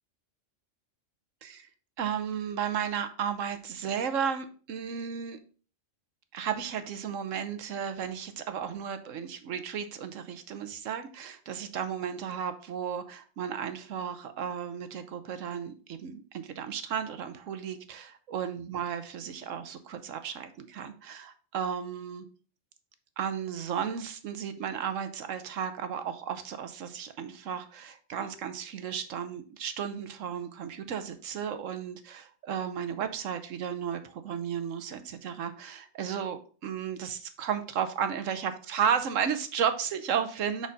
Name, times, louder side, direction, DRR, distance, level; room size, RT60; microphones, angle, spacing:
voice 1, 2.0-5.4 6.3-22.3 23.2-40.7, right 8 dB, 85° right, 9 dB, 1.2 m, -34 dB
6.5 x 4.8 x 4.0 m, 0.39 s
omnidirectional pair, 1.3 m